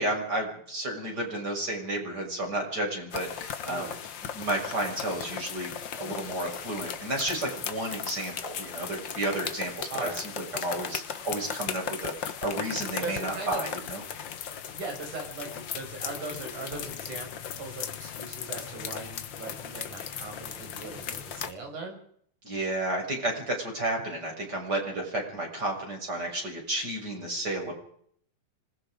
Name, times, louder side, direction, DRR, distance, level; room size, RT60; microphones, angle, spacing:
voice 1, 0.0-3.9 4.3-14.0 22.4-27.7, right 1 dB, 30° right, 1 dB, 7.1 m, -32 dB
sound 1, 3.1-21.5, left 8 dB, 55° left, 1.3 m, -37 dB
voice 2, 3.6-4.0 9.9-10.2 13.0-13.6 14.7-17.3 17.6-22.0 27.2-27.3 27.7-27.8, right 3 dB, 75° right, 2 dB, 7.5 m, -39 dB
26.0 x 20.5 x 5.1 m, 0.63 s
omnidirectional pair, 3.6 m